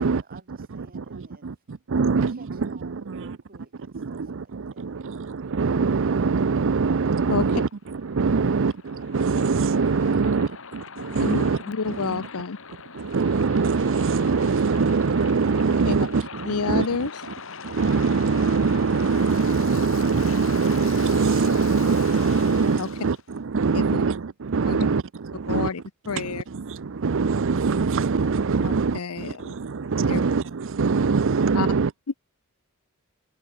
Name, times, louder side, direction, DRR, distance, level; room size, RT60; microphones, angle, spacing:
voice 1, 0.0-1.5 1.9-5.0 10.1-10.5, right 3 dB, 45° right, 7.3 m, -51 dB
voice 2, 0.7-3.4 3.9-11.6 11.9-12.2 12.9-17.1 17.6-25.7 26.1-31.9, right 4 dB, 60° right, 0.6 m, -23 dB
Waves surf, 7.4-23.2, left 5 dB, 65° left, 5.1 m, -41 dB
voice 3, 11.2-12.6 15.8-15.9 16.5-17.1 22.8-22.9 23.7-23.8 24.7-24.9 25.5-25.8 26.1-26.4 28.6-29.5 30.1-30.2 31.6-31.7, left 5 dB, 80° left, 0.8 m, -28 dB
head